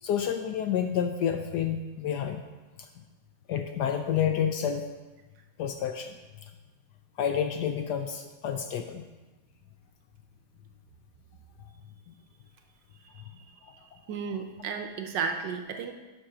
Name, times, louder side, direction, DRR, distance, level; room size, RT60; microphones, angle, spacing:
voice 1, 0.0-2.4 2.8-3.0 3.5-4.8 5.6-6.2 7.2-9.1 12.1-12.2, left 8 dB, 80° left, 6 dB, 0.9 m, -29 dB
voice 2, 13.1-13.5 14.1-15.9, right 6 dB, 70° right, 4 dB, 1.2 m, -33 dB
11.0 x 4.5 x 5.9 m, 1.2 s
omnidirectional pair, 2.3 m